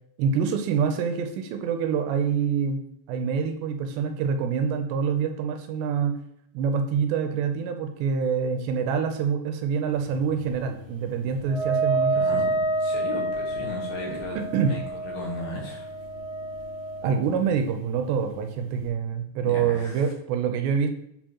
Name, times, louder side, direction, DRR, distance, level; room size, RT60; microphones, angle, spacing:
voice 1, 0.2-2.8 3.1-6.2 6.5-12.2 14.1-14.7 17.0-21.0, right 6 dB, 85° right, 5 dB, 2.8 m, -26 dB
sound 1, 9.9-18.9, left 3 dB, 55° right, 2.2 m, -48 dB
Wind instrument woodwind instrument, 11.5-17.1, right 3 dB, 90° left, 1.9 m, -28 dB
voice 2, 12.1-15.9 19.4-20.1, left 2 dB, 70° left, -2 dB, 2.8 m, -36 dB
7.7 x 4.4 x 2.9 m, 0.73 s
omnidirectional pair, 5.0 m